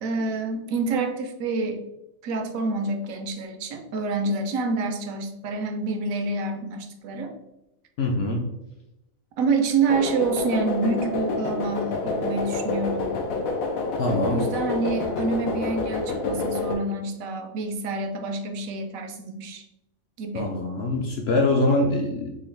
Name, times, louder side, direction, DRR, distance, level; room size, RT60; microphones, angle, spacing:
voice 1, 0.0-1.8 2.2-7.3 9.4-13.2 14.3-19.6 20.2-20.5, right 3 dB, 80° right, 5 dB, 1.0 m, -27 dB
voice 2, 8.0-8.4 14.0-14.4 20.3-22.3, left 2 dB, 65° left, 1 dB, 0.7 m, -23 dB
sound 1, 9.9-16.8, left 3 dB, 85° left, 1.0 m, -28 dB
3.8 x 2.5 x 3.1 m, 0.91 s
omnidirectional pair, 1.4 m